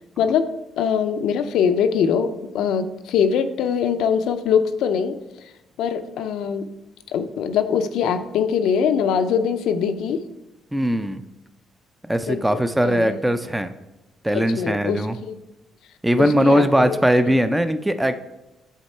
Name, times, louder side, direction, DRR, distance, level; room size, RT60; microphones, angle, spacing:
voice 1, 0.2-0.5 0.8-5.2 5.8-6.7 7.1-10.2 12.3-13.2 14.3-15.4 16.2-17.0, left 7 dB, 85° left, 9 dB, 0.5 m, -22 dB
voice 2, 10.7-11.2 12.1-13.7 14.2-15.2 16.0-18.2, equal, 10° right, 10 dB, 0.4 m, -20 dB
8.2 x 3.6 x 4.3 m, 0.99 s
cardioid pair, 90°, 0 cm